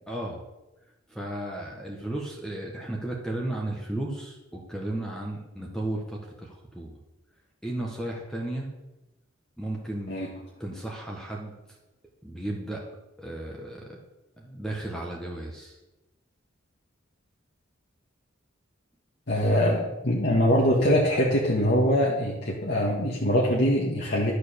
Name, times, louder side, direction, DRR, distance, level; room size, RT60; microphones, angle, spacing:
voice 1, 0.1-0.4 1.1-7.0 7.6-8.7 9.6-10.1 10.6-11.5 12.2-12.8 13.2-14.0 14.4-15.8, right 1 dB, 5° left, -1 dB, 1.5 m, -34 dB
voice 2, 19.3-24.3, equal, 55° left, -4 dB, 1.8 m, -23 dB
12.5 x 6.8 x 7.0 m, 1.0 s
head